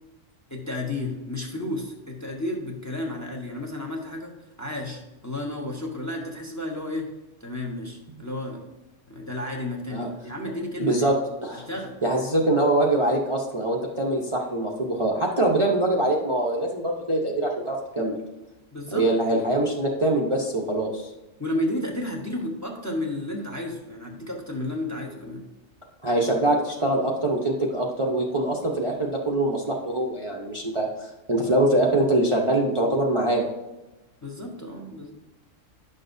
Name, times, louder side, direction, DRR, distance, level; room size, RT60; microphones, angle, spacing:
voice 1, 0.5-4.3 4.6-7.1 7.4-8.6 9.1-11.1 11.5-11.9 18.7-19.1 21.4-25.5 34.2-35.1, left 1 dB, 15° left, 1 dB, 1.0 m, -32 dB
voice 2, 10.8-11.2 11.4-11.7 12.0-18.2 18.9-21.1 26.0-33.4, right 1 dB, 30° right, -2 dB, 0.8 m, -23 dB
10.5 x 6.6 x 2.6 m, 1.0 s
omnidirectional pair, 1.4 m